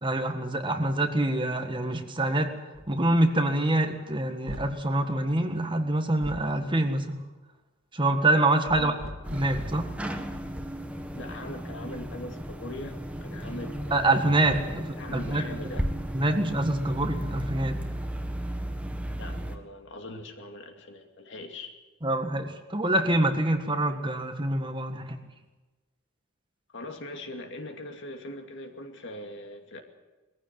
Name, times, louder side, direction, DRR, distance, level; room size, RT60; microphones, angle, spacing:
voice 1, 0.0-2.5 2.9-7.2 7.9-8.9 9.3-9.9 13.9-15.4 16.1-17.7 22.0-25.2, right 1 dB, 25° right, 6 dB, 1.7 m, -26 dB
sound 1, 2.7-3.0 4.5-4.9 6.2-6.5 8.7-9.9, equal, 80° right, 2.1 m, -40 dB
sound 2, 9.2-19.6, equal, 5° right, 1.4 m, -35 dB
voice 2, 11.1-15.8 16.2-16.4 19.2-21.7 26.7-29.8, left 1 dB, 65° left, 5 dB, 2.5 m, -41 dB
21.0 x 15.0 x 9.4 m, 1.2 s
head